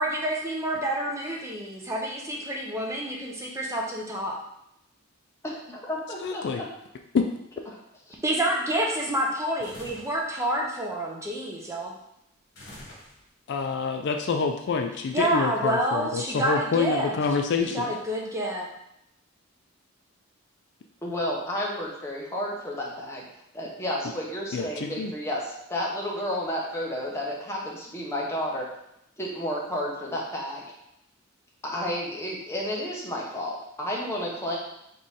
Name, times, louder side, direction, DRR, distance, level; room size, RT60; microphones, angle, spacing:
voice 1, 0.0-4.4 8.2-11.9 15.1-17.1 17.7-18.7, right 1 dB, 15° right, -1 dB, 0.6 m, -28 dB
voice 2, 5.4-6.6 21.0-23.2 23.5-28.7 29.2-30.6 31.6-34.6, equal, 15° left, -3 dB, 0.9 m, -31 dB
voice 3, 6.2-6.6 7.1-7.3 13.5-17.9 24.5-25.1, left 5 dB, 55° left, 5 dB, 0.3 m, -27 dB
sound 1, 9.6-10.3 12.6-13.5, left 1 dB, 75° left, 1.4 m, -45 dB
3.8 x 3.1 x 4.1 m, 0.80 s
head